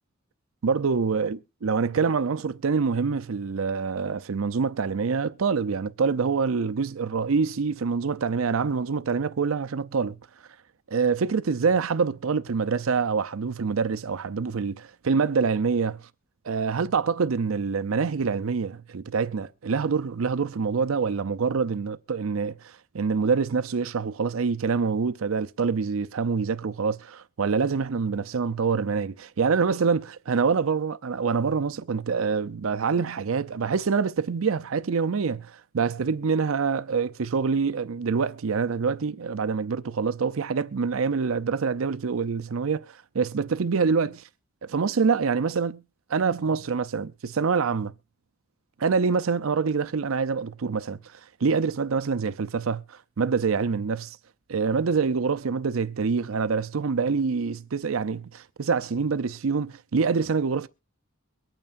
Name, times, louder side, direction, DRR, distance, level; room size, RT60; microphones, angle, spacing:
voice 1, 0.6-10.2 10.9-16.0 16.4-44.2 44.6-45.8 46.1-47.9 48.8-51.0 51.4-54.2 54.5-60.7, right 5 dB, 85° right, 0.6 m, -26 dB
23.0 x 8.9 x 2.5 m
head